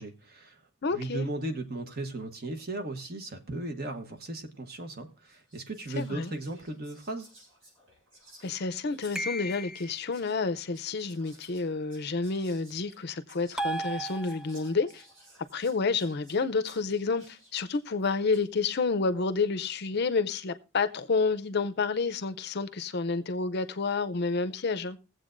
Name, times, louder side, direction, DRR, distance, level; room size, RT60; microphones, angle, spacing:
voice 1, 0.0-7.3, right 2 dB, 45° right, 1.1 m, -36 dB
voice 2, 0.8-1.3 6.0-6.3 8.4-15.0 15.5-25.0, left 4 dB, 50° left, 0.6 m, -29 dB
Whispering, 4.7-4.9 5.3-18.5, right 1 dB, 70° right, 6.9 m, -58 dB
sound 1, 9.1-10.1 13.6-14.8, right 1 dB, 5° right, 0.4 m, -34 dB
21.5 x 7.8 x 2.5 m
head